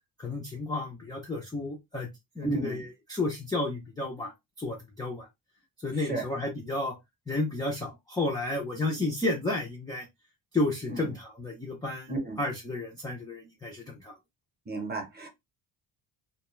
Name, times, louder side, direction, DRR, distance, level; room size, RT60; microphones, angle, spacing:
voice 1, 0.2-2.1 2.4-4.3 4.6-5.3 5.8-6.9 7.3-10.1 10.5-14.1, left 2 dB, 10° left, 0.3 m, -32 dB
voice 2, 2.4-2.8 6.1-6.2 10.9-11.1 12.1-12.4 14.7-15.3, right 3 dB, 20° right, 0.7 m, -32 dB
2.2 x 2.2 x 3.0 m
cardioid pair, 150°, 46 cm